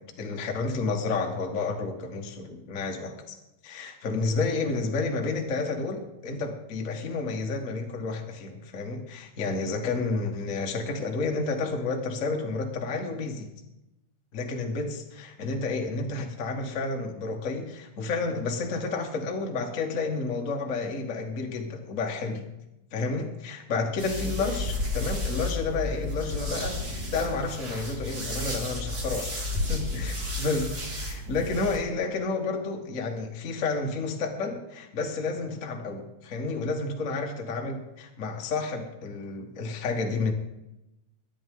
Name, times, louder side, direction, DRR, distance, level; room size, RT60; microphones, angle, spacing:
voice 1, 0.0-3.3 3.6-13.5 14.3-22.4 22.9-40.3, left 3 dB, 75° left, 2 dB, 0.7 m, -31 dB
sound 1, 24.0-31.8, left 2 dB, 30° right, 2.2 m, -32 dB
22.0 x 10.0 x 3.8 m, 0.94 s
omnidirectional pair, 4.2 m